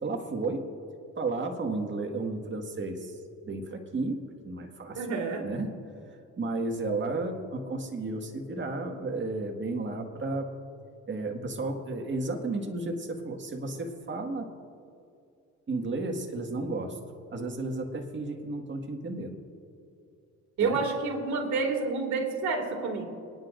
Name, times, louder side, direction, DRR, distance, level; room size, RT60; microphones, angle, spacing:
voice 1, 0.0-0.7 1.2-3.2 3.4-5.7 6.4-10.5 11.1-14.5 15.7-17.0 17.3-19.4 20.6-20.8, right 2 dB, 40° right, 3 dB, 1.8 m, -33 dB
voice 2, 5.0-5.5 20.6-23.0, right 4 dB, 70° right, 2 dB, 2.3 m, -29 dB
29.0 x 9.8 x 2.6 m, 2.5 s
cardioid pair, 90°, 30 cm